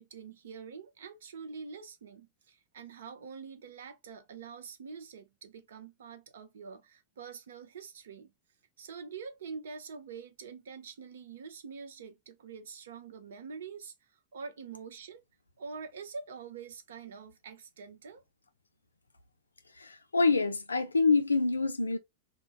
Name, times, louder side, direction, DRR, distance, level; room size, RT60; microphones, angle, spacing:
voice 1, 0.0-8.3 8.8-13.9 14.3-15.2 15.6-18.2, right 5 dB, 70° right, 0.5 m, -45 dB
voice 2, 19.8-22.0, left 4 dB, 90° left, 0.3 m, -26 dB
2.2 x 2.1 x 3.1 m
figure-of-eight pair, 95°, 0 cm